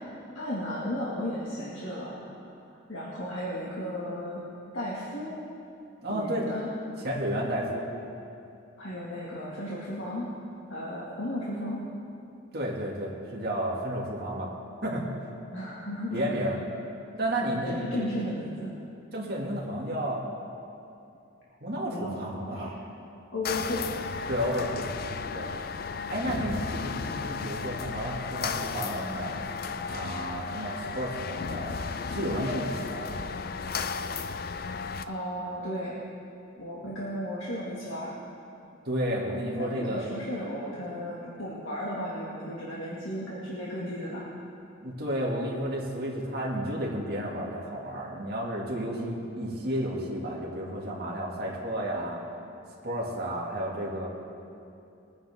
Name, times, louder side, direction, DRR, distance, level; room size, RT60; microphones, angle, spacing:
voice 1, 0.3-2.3 2.7-4.4 4.7-5.3 6.1-6.7 8.8-10.3 10.7-11.8 15.5-16.5 17.7-18.7 21.9-22.8 23.3-23.9 35.1-35.9 36.6-38.1 39.6-44.3, equal, 75° left, -6 dB, 2.0 m, -34 dB
voice 2, 6.0-6.4 7.0-7.8 12.5-14.5 14.8-15.1 16.1-16.6 17.2-18.1 19.1-20.2 21.6-22.7 24.3-24.8 25.3-25.5 26.1-29.3 29.9-31.8 32.0-33.2 38.8-40.1 44.8-52.2 52.8-54.1, equal, 50° right, -3 dB, 2.2 m, -32 dB
sound 1, 23.4-35.0, left 5 dB, 45° left, 0.4 m, -34 dB
22.0 x 9.8 x 3.6 m, 2.6 s
head